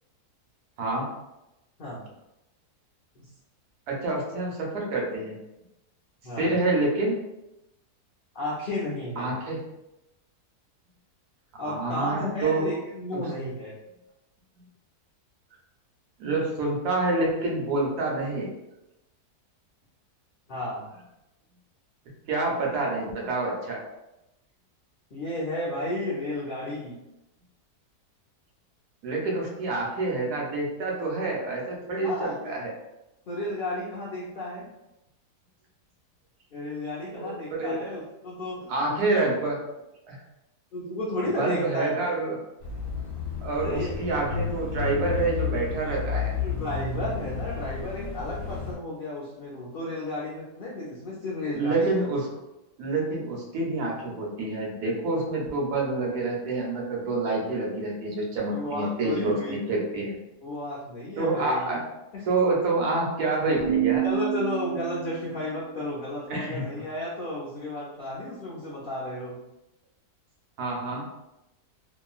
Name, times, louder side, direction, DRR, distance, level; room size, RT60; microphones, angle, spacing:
voice 1, 3.9-5.4 6.4-7.2 9.2-9.6 11.5-12.6 13.1-13.2 16.2-18.5 22.3-23.8 29.0-32.7 37.2-37.9 38.7-39.6 40.1-40.2 41.4-42.4 43.4-46.3 51.5-52.3 52.8-60.2 61.2-61.8 62.3-64.1 66.3-66.6 70.6-71.1, right 2 dB, 75° right, -2 dB, 1.2 m, -27 dB
voice 2, 6.2-6.6 8.3-9.3 11.6-13.7 20.5-20.9 25.1-27.0 31.9-32.6 33.3-34.7 36.5-39.0 40.7-42.0 43.6-43.9 46.4-51.9 58.5-59.6 60.4-61.8 62.1-62.2 64.0-69.4, left 1 dB, 85° left, -6 dB, 0.4 m, -33 dB
Bicycle / Mechanisms, 42.6-48.7, left 5 dB, 45° left, 0.8 m, -31 dB
Keyboard (musical), 63.6-65.4, right 16 dB, 30° right, 0.4 m, -28 dB
2.9 x 2.4 x 2.3 m, 0.93 s
omnidirectional pair, 1.7 m